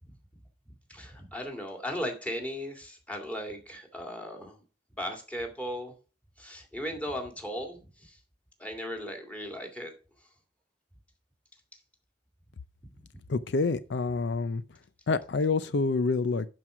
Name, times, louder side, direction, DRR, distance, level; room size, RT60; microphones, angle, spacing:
voice 1, 0.9-4.6 5.0-5.9 6.4-8.2 8.6-9.9, equal, 10° left, 2.1 m, -37 dB
voice 2, 13.3-14.6 15.1-16.5, left 3 dB, 70° left, 0.5 m, -27 dB
11.5 x 4.7 x 4.9 m
head